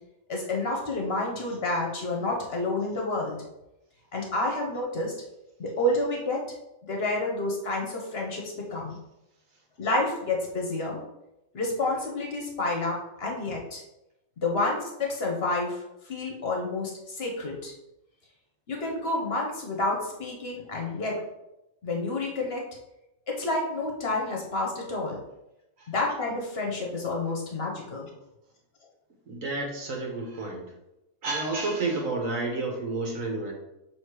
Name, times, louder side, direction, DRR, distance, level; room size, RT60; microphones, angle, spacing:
voice 1, 0.3-3.4 4.1-5.1 5.6-6.5 6.8-9.0 9.8-11.0 11.5-13.8 14.4-15.8 16.1-17.7 18.7-21.2 21.8-22.6 23.3-25.2 25.9-28.1, left 2 dB, 50° left, 0 dB, 1.2 m, -29 dB
voice 2, 29.3-30.7 31.2-33.5, right 3 dB, 70° right, 1 dB, 1.5 m, -30 dB
6.3 x 3.2 x 4.7 m, 0.91 s
omnidirectional pair, 1.5 m